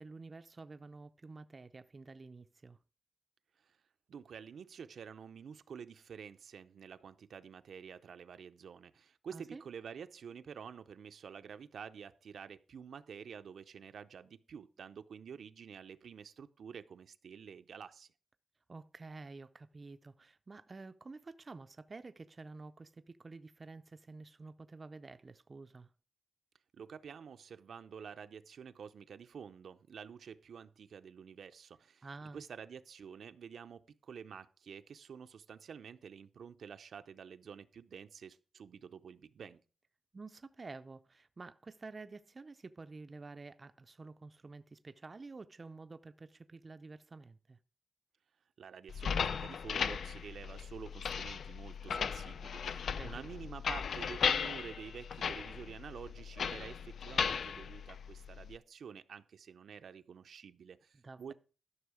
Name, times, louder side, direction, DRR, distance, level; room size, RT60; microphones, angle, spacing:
voice 1, 0.0-2.8 9.3-9.6 18.7-25.9 32.0-32.4 40.1-47.6 52.9-53.2 61.0-61.3, right 3 dB, 30° right, 0.4 m, -50 dB
voice 2, 4.1-18.1 26.7-32.1 32.3-39.6 48.6-61.3, right 7 dB, 80° right, 0.6 m, -49 dB
sound 1, 48.9-58.6, left 6 dB, 75° left, 0.4 m, -37 dB
12.5 x 6.2 x 4.9 m
wide cardioid pair, 160°, 0 cm